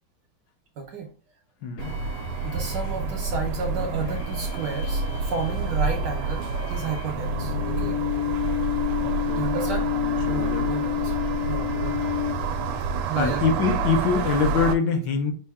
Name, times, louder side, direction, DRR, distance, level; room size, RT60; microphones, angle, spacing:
voice 1, 0.8-1.1 2.4-8.0 8.9-9.0 9.3-9.9 10.3-12.1 13.1-13.4, right 4 dB, 70° right, 3 dB, 1.1 m, -32 dB
voice 2, 1.6-1.9 9.0-9.5 10.0-10.7 13.1-15.3, left 5 dB, 65° left, 6 dB, 1.3 m, -24 dB
sound 1, 1.8-12.8, left 12 dB, 90° left, 0.8 m, -31 dB
sound 2, 1.8-14.8, right 4 dB, 85° right, 1.5 m, -28 dB
5.4 x 2.5 x 3.5 m, 0.41 s
omnidirectional pair, 2.4 m